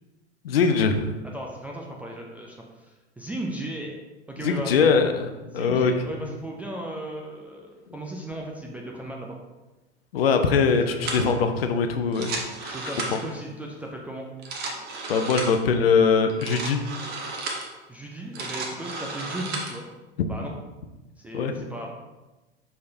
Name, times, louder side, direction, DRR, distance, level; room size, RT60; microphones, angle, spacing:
voice 1, 0.4-1.1 4.4-5.3 5.5-5.9 10.1-12.7 15.1-16.8 20.2-20.3 21.3-21.5, left 5 dB, 60° left, 7 dB, 0.7 m, -22 dB
voice 2, 1.3-4.0 4.3-4.9 5.5-9.4 10.9-11.3 12.7-14.3 17.9-19.9 20.2-20.5 21.2-21.9, right 1 dB, 5° right, -2 dB, 0.4 m, -36 dB
sound 1, 11.0-11.3 12.0-13.4 14.3-15.6 16.3-17.7 18.2-19.8, right 3 dB, 30° right, 1.1 m, -33 dB
6.4 x 5.7 x 2.7 m, 1.1 s
figure-of-eight pair, 90°, 34 cm